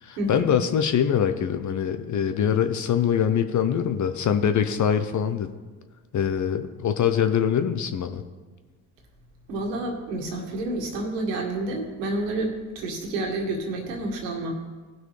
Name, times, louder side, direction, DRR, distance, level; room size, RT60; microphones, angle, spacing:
voice 1, 0.0-5.5 6.1-8.2, left 8 dB, 40° left, 9 dB, 0.7 m, -23 dB
voice 2, 9.5-14.5, right 2 dB, 80° right, 2 dB, 1.9 m, -29 dB
17.5 x 6.1 x 3.3 m, 1.4 s
hypercardioid pair, 60°, 47 cm